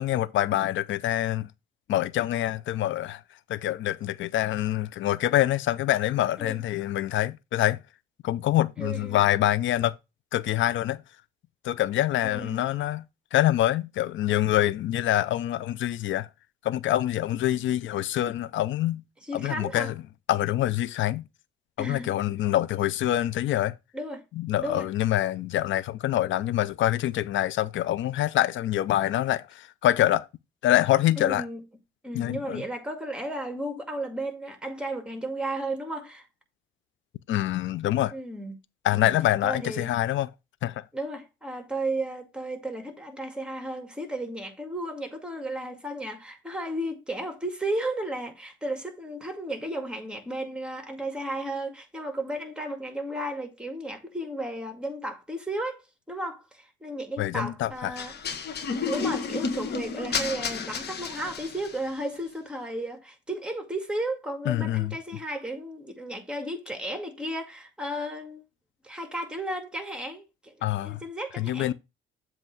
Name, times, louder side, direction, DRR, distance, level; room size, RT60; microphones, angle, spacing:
voice 1, 0.0-1.5 1.9-3.2 3.5-7.8 8.2-9.9 10.3-11.0 11.6-13.0 13.3-16.3 16.6-19.0 19.3-20.0 20.3-21.2 21.8-23.7 24.3-30.3 30.6-31.4 32.1-32.6 37.3-38.1 38.8-40.3 40.6-40.8 57.2-57.9 64.5-64.9 70.6-71.0 71.4-71.7, left 13 dB, 75° left, 0.5 m, -25 dB
voice 2, 8.8-9.2 12.2-12.7 19.2-19.9 21.8-22.1 23.9-24.2 24.6-24.9 31.2-31.6 32.0-36.3 38.1-38.5 38.9-39.1 39.4-39.9 40.9-58.1 58.8-68.4 68.8-71.7, right 1 dB, 5° right, 2.0 m, -34 dB
sound 1, 58.0-61.9, left 5 dB, 55° left, 1.2 m, -31 dB
7.7 x 3.1 x 6.0 m
cardioid pair, 90°, 20 cm